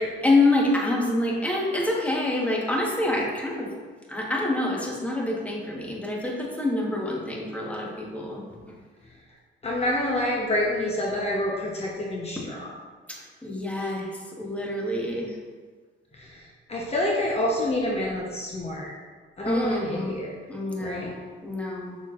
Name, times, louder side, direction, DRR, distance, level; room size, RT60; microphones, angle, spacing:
voice 1, 0.2-3.7 4.1-8.4 13.1-14.1 14.4-15.3 19.4-20.2 20.5-21.1 21.4-22.0, left 2 dB, 5° left, -2 dB, 1.2 m, -26 dB
voice 2, 9.6-12.8 16.1-16.4 16.7-19.0 19.4-20.4 20.8-21.1, left 1 dB, 30° left, -3 dB, 0.9 m, -27 dB
6.4 x 6.0 x 2.5 m, 1.5 s
cardioid pair, 90°, 20 cm